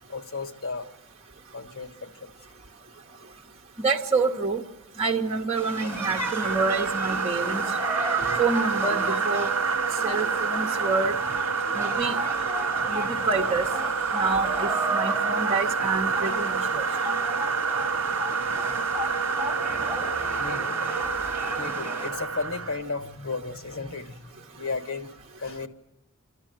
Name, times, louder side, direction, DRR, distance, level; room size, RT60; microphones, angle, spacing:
voice 1, 0.1-0.9 1.5-2.3 20.4-21.0 21.6-25.1 25.4-25.7, left 4 dB, 80° left, 7 dB, 1.5 m, -34 dB
voice 2, 3.8-4.6 5.0-7.6 8.4-9.5 10.0-11.1 11.7-12.2 12.9-13.7 14.1-16.9, right 4 dB, 30° right, -1 dB, 1.0 m, -27 dB
sound 1, 5.6-22.1, right 1 dB, 10° right, 3.9 m, -34 dB
sound 2, 5.8-22.8, right 5 dB, 85° right, 0.7 m, -28 dB
29.0 x 13.0 x 9.2 m, 0.99 s
head